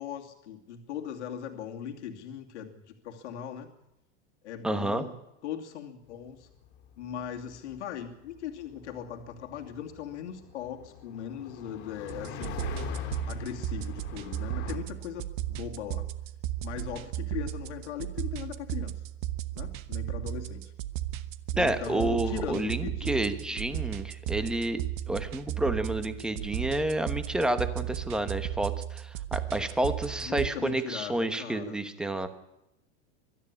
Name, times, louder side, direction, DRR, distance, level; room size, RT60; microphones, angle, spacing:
voice 1, 0.0-3.7 4.4-5.1 5.4-6.5 7.0-12.6 13.2-16.1 16.6-19.0 19.5-20.7 21.5-23.2 30.2-31.8, left 9 dB, 90° left, 2 dB, 2.7 m, -39 dB
voice 2, 4.6-5.0 21.6-32.3, right 1 dB, ahead, 10 dB, 1.0 m, -30 dB
sound 1, 6.3-14.8, left 9 dB, 30° left, 2.5 m, -42 dB
sound 2, 12.1-30.5, right 13 dB, 45° right, 1.1 m, -35 dB
23.0 x 13.0 x 9.9 m, 0.90 s
supercardioid pair, 165°, 34 cm